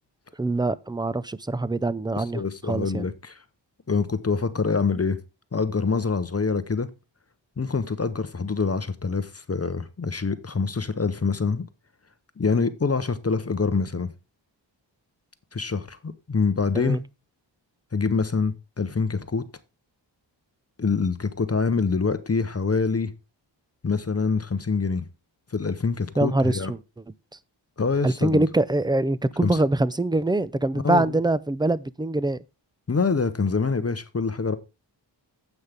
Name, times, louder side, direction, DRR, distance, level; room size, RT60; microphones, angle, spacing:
voice 1, 0.4-3.1 16.7-17.0 26.2-26.8 28.0-32.4, right 2 dB, 10° right, 0.4 m, -24 dB
voice 2, 2.1-3.4 3.9-5.2 5.5-6.9 7.6-11.7 12.4-14.1 15.5-17.0 17.9-19.4 20.8-23.1 23.8-25.1 25.5-26.7 27.8-28.5 29.4-29.5 30.8-31.2 32.9-34.6, left 4 dB, 35° left, 0.8 m, -25 dB
9.5 x 8.2 x 3.4 m
wide cardioid pair, 125°, 45 cm